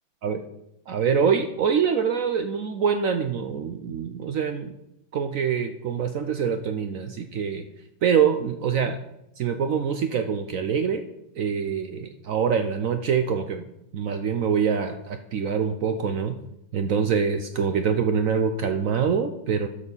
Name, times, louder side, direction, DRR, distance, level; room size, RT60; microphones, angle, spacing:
voice 1, 0.9-4.7 5.1-7.6 8.0-9.0 9.4-11.0 11.4-13.7 13.9-16.4 16.7-19.7, right 6 dB, 75° right, 7 dB, 0.7 m, -25 dB
11.5 x 4.2 x 7.1 m, 0.82 s
omnidirectional pair, 2.1 m